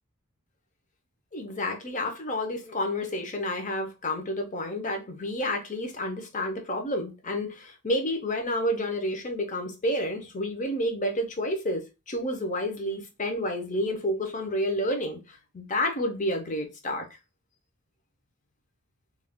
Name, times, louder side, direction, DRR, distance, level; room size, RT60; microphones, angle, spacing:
voice 1, 1.3-17.1, left 1 dB, 35° left, 0.6 m, -30 dB
2.4 x 2.3 x 3.4 m
head